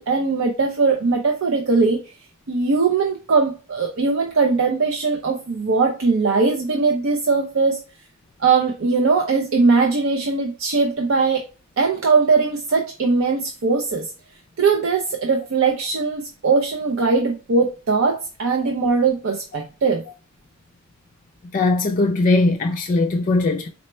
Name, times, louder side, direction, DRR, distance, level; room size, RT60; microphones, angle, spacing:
voice 1, 0.0-2.0 2.5-7.8 8.4-11.4 11.8-14.1 14.6-20.0, right 4 dB, 65° right, 0.5 m, -20 dB
voice 2, 21.5-23.7, left 2 dB, 35° left, 0.4 m, -19 dB
4.2 x 2.1 x 4.2 m
head